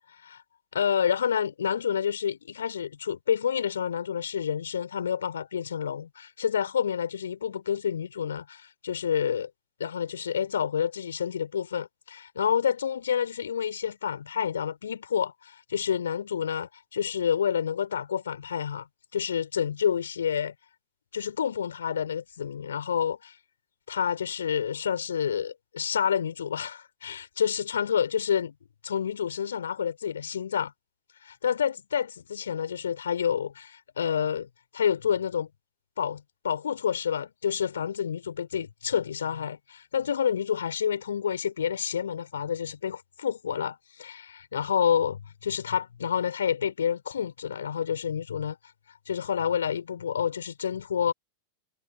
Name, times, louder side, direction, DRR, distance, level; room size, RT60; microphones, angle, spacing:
voice 1, 0.7-9.5 9.8-18.9 19.1-20.5 21.1-23.3 23.9-28.5 28.8-30.7 31.2-34.5 34.7-35.5 36.0-48.6 49.1-51.1, left 8 dB, 70° left, 5.7 m, -29 dB
figure-of-eight pair, 90°, 0 cm